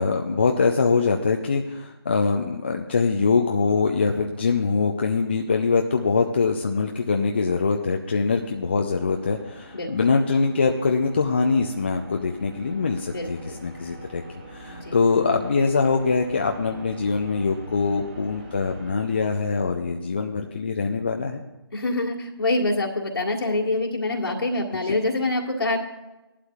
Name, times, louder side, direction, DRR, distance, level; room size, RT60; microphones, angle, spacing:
voice 1, 0.0-14.2 14.5-21.4 24.9-25.0, left 4 dB, 25° left, 3 dB, 0.5 m, -23 dB
sound 1, 7.5-20.2, right 1 dB, 20° right, 1.7 m, -44 dB
voice 2, 13.1-13.6 14.7-15.0 21.7-25.8, left 2 dB, 65° left, -1 dB, 1.7 m, -25 dB
18.5 x 11.5 x 2.4 m, 1.0 s
figure-of-eight pair, 160°, 14 cm